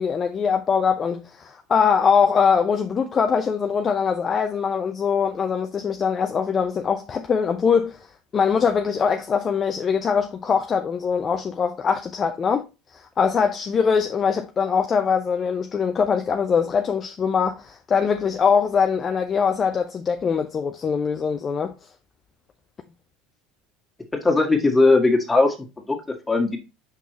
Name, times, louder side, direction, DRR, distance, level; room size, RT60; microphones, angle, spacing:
voice 1, 0.0-8.1 8.3-12.6 12.9-21.7, left 6 dB, 30° left, 0.6 m, -22 dB
voice 2, 24.1-26.6, left 3 dB, 15° left, 1.8 m, -19 dB
6.1 x 5.3 x 3.1 m
figure-of-eight pair, 70°, 0 cm